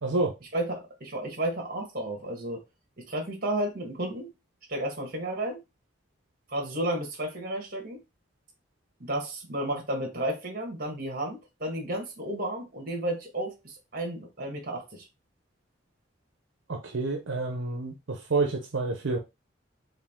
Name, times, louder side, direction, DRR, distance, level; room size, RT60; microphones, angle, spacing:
voice 1, 0.0-0.3 16.7-19.2, right 3 dB, 80° right, 0.7 m, -29 dB
voice 2, 0.5-2.6 3.0-4.3 4.7-5.6 6.5-8.0 9.0-15.1, right 1 dB, 50° right, 1.5 m, -32 dB
4.8 x 2.6 x 3.6 m
head